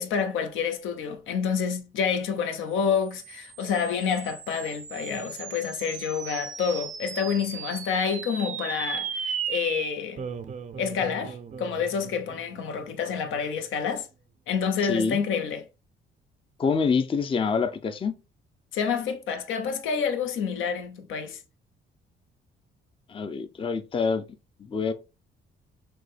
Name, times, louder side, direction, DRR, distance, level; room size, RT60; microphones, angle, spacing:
voice 1, 0.0-10.2 10.8-14.1 14.5-15.6 18.7-21.4, left 6 dB, 80° left, 0.7 m, -28 dB
sound 1, 2.7-13.4, right 7 dB, 40° right, 0.5 m, -37 dB
voice 2, 14.8-15.2 16.6-18.1 23.1-24.2 24.7-24.9, left 5 dB, 25° left, 0.5 m, -26 dB
6.0 x 2.2 x 3.2 m
cardioid pair, 90°, 20 cm